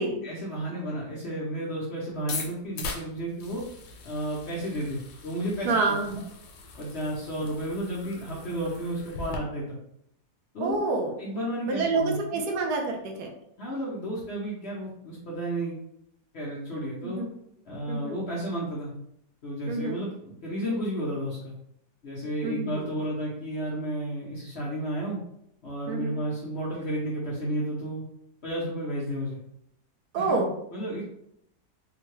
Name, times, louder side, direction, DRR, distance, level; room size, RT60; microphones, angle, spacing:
voice 1, 0.2-3.6 4.0-5.7 6.1-6.2 6.8-9.8 10.5-10.8 11.2-12.4 13.6-15.8 16.3-17.2 17.6-18.9 19.4-21.5 22.0-25.2 25.6-28.1 28.4-29.4 30.1-30.4 30.7-31.1, right 1 dB, 55° left, -5 dB, 0.7 m, -32 dB
sound 1, 2.2-9.4, left 4 dB, 85° left, 1.2 m, -41 dB
voice 2, 5.6-6.2 10.6-11.1 11.7-13.3 17.0-17.3 17.9-18.2 19.7-20.0 22.4-22.8 25.9-26.2 30.1-30.5, right 3 dB, 75° right, 2 dB, 1.1 m, -28 dB
3.5 x 2.1 x 3.0 m, 0.75 s
omnidirectional pair, 1.8 m